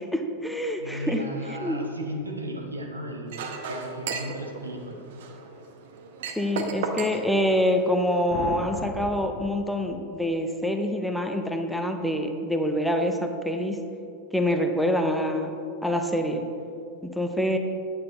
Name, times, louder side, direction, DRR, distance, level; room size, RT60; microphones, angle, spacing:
voice 1, 0.0-1.2 1.5-1.8 6.4-13.8 14.3-15.5 15.8-16.5 17.0-17.6, equal, ahead, 4 dB, 0.6 m, -26 dB
voice 2, 0.8-5.0, right 1 dB, 80° right, 1 dB, 1.1 m, -35 dB
Chink clink, 3.3-8.3, right 4 dB, 55° right, 0.8 m, -35 dB
sound 1, 8.3-10.4, left 7 dB, 40° left, 0.6 m, -37 dB
8.8 x 8.5 x 3.9 m, 2.6 s
figure-of-eight pair, 90°, 0 cm